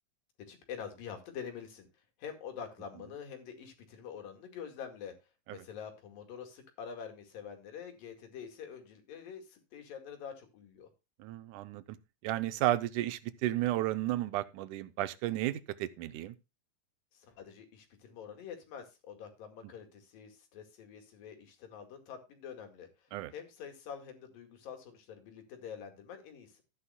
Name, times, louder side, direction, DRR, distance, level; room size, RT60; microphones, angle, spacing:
voice 1, 0.5-5.1 5.5-10.9 17.1-26.6, left 7 dB, 85° left, 3.9 m, -46 dB
voice 2, 11.2-12.0 12.2-16.4 23.1-23.3, right 15 dB, 75° right, 2.1 m, -33 dB
13.5 x 9.9 x 2.2 m
omnidirectional pair, 3.9 m